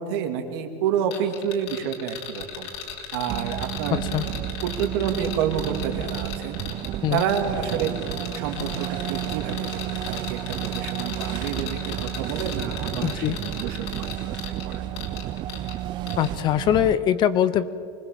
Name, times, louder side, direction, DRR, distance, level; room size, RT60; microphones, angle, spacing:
voice 1, 0.0-2.7 3.1-4.0 4.6-6.6 7.1-7.9 8.3-14.9, right 8 dB, 65° right, 5 dB, 2.8 m, -29 dB
sound 1, 1.1-15.8 16.1-16.3, left 8 dB, 70° left, 4.5 m, -37 dB
sound 2, 3.3-17.0, right 13 dB, 35° right, 0.5 m, -32 dB
voice 2, 3.9-4.2 7.0-7.2 13.0-13.4 16.2-17.7, left 10 dB, 35° left, 15 dB, 0.8 m, -22 dB
25.0 x 20.5 x 7.5 m, 2.4 s
supercardioid pair, 150°, 14 cm